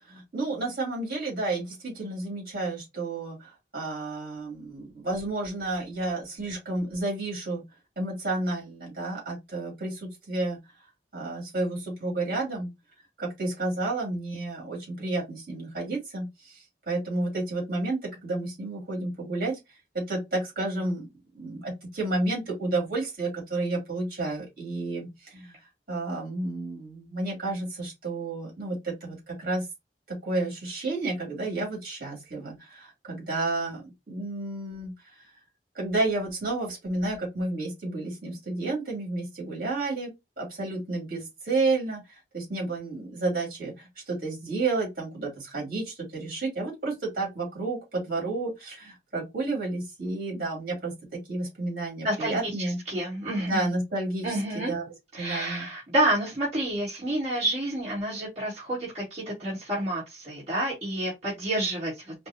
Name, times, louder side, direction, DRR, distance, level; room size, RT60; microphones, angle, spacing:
voice 1, 0.1-7.6 8.0-10.6 11.1-12.7 13.2-19.6 19.9-21.1 21.3-25.6 25.9-29.7 30.1-35.2 35.7-40.1 40.4-50.9 51.3-52.8 53.4-54.8 55.2-55.6, right 2 dB, 55° right, 2.5 m, -31 dB
voice 2, 52.0-53.7 54.2-54.7 55.1-62.1, right 1 dB, 40° right, 1.9 m, -29 dB
5.1 x 2.2 x 2.7 m
head